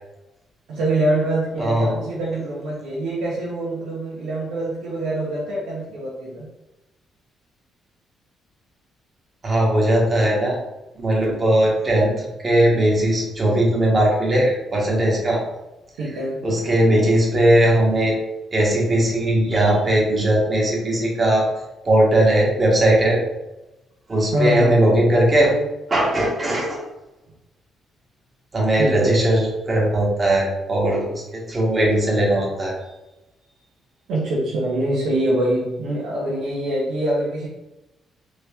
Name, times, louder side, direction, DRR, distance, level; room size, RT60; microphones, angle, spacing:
voice 1, 0.7-6.5 16.0-16.4 24.3-24.7 28.8-29.1 34.1-37.5, right 1 dB, 90° right, -7 dB, 1.2 m, -24 dB
voice 2, 1.6-2.0 9.4-10.6 11.0-15.4 16.4-18.1 18.5-21.5 21.8-23.2 24.1-25.5 25.9-26.8 28.5-29.4 29.7-32.7, right 1 dB, 35° right, -2 dB, 1.5 m, -19 dB
3.8 x 3.2 x 3.6 m, 0.98 s
cardioid pair, 90°, 0 cm